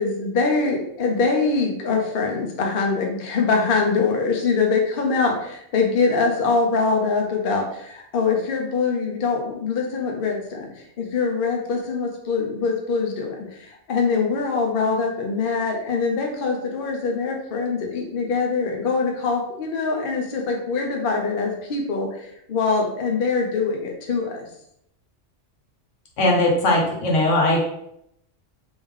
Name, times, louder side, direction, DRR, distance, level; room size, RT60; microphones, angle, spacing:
voice 1, 0.0-24.4, left 4 dB, 55° left, 1 dB, 0.7 m, -23 dB
voice 2, 26.2-27.6, left 1 dB, 75° left, -1 dB, 1.2 m, -19 dB
3.2 x 2.6 x 3.5 m, 0.75 s
omnidirectional pair, 1.3 m